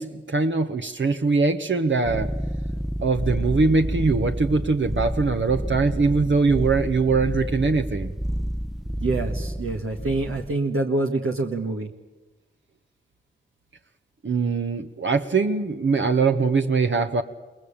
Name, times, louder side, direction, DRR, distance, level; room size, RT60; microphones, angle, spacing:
voice 1, 0.0-2.3 3.0-8.1 14.2-17.2, right 4 dB, 65° right, 5 dB, 1.2 m, -22 dB
sound 1, 2.0-10.5, equal, ahead, 0.7 m, -29 dB
voice 2, 9.0-11.9, right 2 dB, 85° right, 2 dB, 1.6 m, -26 dB
23.0 x 20.0 x 8.8 m, 1.2 s
cardioid pair, 45°, 21 cm